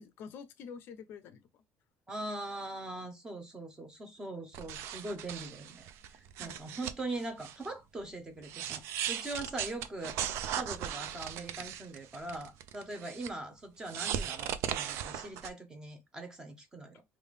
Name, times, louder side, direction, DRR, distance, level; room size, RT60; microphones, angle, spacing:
voice 1, 0.0-1.6 6.4-6.8, left 6 dB, 50° left, 0.5 m, -48 dB
voice 2, 2.1-17.0, right 2 dB, 15° right, 0.8 m, -41 dB
sound 1, 4.5-7.7 8.0-8.1 8.4-13.3 13.9-15.5, right 10 dB, 65° right, 0.4 m, -38 dB
3.5 x 2.5 x 3.2 m
cardioid pair, 170°, 5 cm